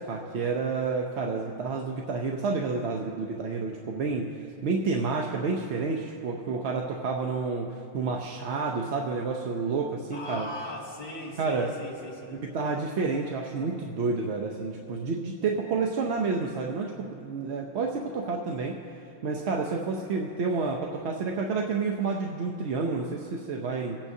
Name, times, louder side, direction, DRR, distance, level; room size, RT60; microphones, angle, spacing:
voice 1, 0.0-10.5 11.4-11.7 12.3-18.8 19.2-24.0, right 4 dB, 75° right, 0 dB, 1.0 m, -30 dB
voice 2, 10.1-12.4, left 2 dB, 55° left, -4 dB, 2.6 m, -39 dB
24.0 x 8.9 x 2.7 m, 2.5 s
omnidirectional pair, 1.2 m